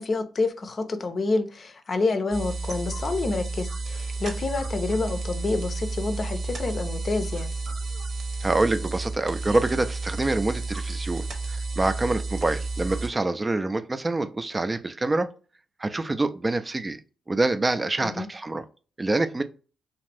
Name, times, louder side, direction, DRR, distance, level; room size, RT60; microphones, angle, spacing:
voice 1, 0.0-7.5 18.0-18.3, left 3 dB, 50° left, 0.5 m, -28 dB
sound 1, 2.3-13.1, right 3 dB, 60° right, 0.9 m, -31 dB
voice 2, 8.4-15.3 15.8-17.0 17.3-18.6 19.0-19.4, right 2 dB, 30° right, 0.4 m, -26 dB
2.6 x 2.5 x 3.2 m
hypercardioid pair, 45°, 0 cm